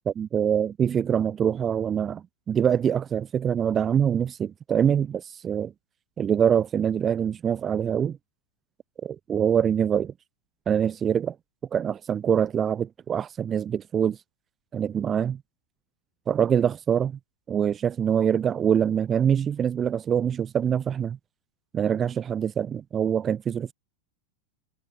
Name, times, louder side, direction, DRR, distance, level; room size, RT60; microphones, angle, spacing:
voice 1, 0.1-5.7 6.2-8.2 9.0-10.1 10.7-11.3 11.7-14.2 14.7-15.4 16.3-17.2 17.5-21.2 21.7-23.7, right 8 dB, 25° right, 4.4 m, -24 dB
figure-of-eight pair, 90°, 0 cm